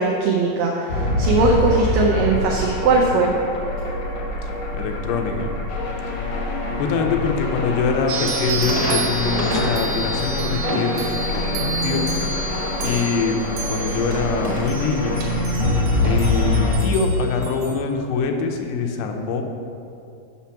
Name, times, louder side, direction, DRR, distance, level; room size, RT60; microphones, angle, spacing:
voice 1, 0.0-3.3, right 3 dB, 90° right, 0 dB, 1.9 m, -19 dB
sound 1, 0.9-16.7, left 2 dB, 70° left, 1.6 m, -25 dB
voice 2, 4.8-5.5 6.8-11.1 11.3-12.1 12.8-15.2 15.9-19.4, left 4 dB, 85° left, 4 dB, 2.8 m, -24 dB
sound 2, 8.1-17.7, right 2 dB, 75° right, 2.6 m, -31 dB
sound 3, 8.6-9.9 10.2-15.6 16.0-16.2, equal, 55° right, 2.1 m, -29 dB
7.1 x 6.0 x 5.7 m, 2.5 s
omnidirectional pair, 4.7 m